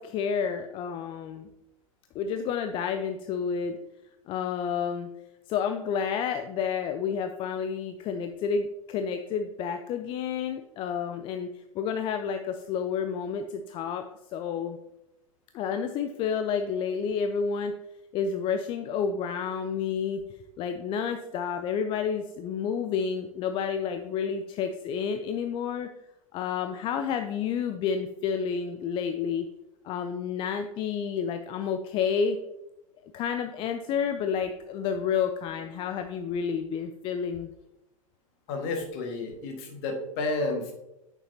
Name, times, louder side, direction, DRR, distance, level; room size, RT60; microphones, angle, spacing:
voice 1, 0.0-1.5 2.1-3.8 4.3-5.1 5.5-14.0 14.3-14.8 15.5-17.7 18.1-20.2 20.6-25.9 26.3-29.5 29.8-32.4 33.1-37.5, left 6 dB, 30° left, 7 dB, 0.5 m, -30 dB
voice 2, 38.5-40.7, left 2 dB, 45° left, 2 dB, 1.8 m, -31 dB
8.4 x 6.7 x 2.8 m, 0.91 s
figure-of-eight pair, 90°, 18 cm